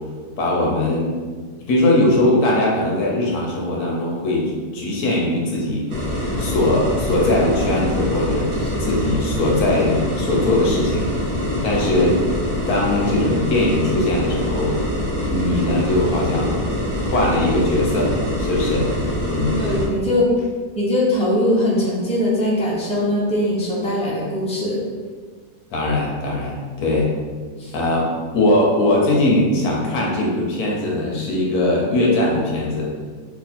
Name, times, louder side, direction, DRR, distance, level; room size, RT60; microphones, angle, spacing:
voice 1, 0.4-1.2 1.7-12.2 12.7-14.8 15.2-16.6 17.0-18.9 19.3-19.6 25.7-27.1 27.7-32.9, left 1 dB, 80° left, -2 dB, 1.3 m, -20 dB
sound 1, 5.9-19.9, left 1 dB, 45° right, 0.8 m, -24 dB
voice 2, 19.6-20.3 20.7-24.8 27.6-27.7, left 1 dB, 10° left, -6 dB, 0.4 m, -21 dB
3.4 x 2.3 x 4.2 m, 1.5 s
omnidirectional pair, 1.6 m